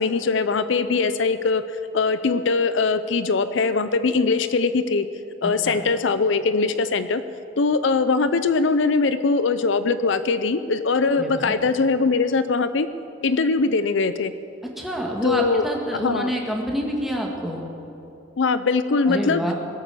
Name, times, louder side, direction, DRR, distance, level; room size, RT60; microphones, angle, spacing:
voice 1, 0.0-1.6 1.9-5.1 5.4-7.2 7.6-12.9 13.2-14.3 15.2-15.6 16.0-16.3 18.4-19.4, left 4 dB, 65° left, 12 dB, 0.5 m, -21 dB
voice 2, 5.4-5.8 11.2-11.5 14.8-17.6 19.0-19.5, equal, ahead, -1 dB, 1.9 m, -27 dB
22.0 x 8.6 x 6.9 m, 2.9 s
head